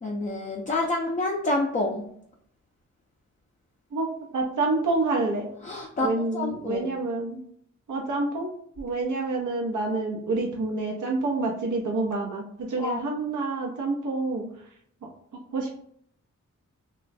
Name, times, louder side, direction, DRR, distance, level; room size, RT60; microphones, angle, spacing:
voice 1, 0.0-2.1 5.6-6.9 12.8-13.0, left 2 dB, 25° left, 0 dB, 0.4 m, -28 dB
voice 2, 4.3-5.5 6.0-7.4 7.9-14.5 15.5-15.8, right 3 dB, 75° right, 0 dB, 0.6 m, -28 dB
3.0 x 2.2 x 2.5 m, 0.65 s
wide cardioid pair, 85°, 30 cm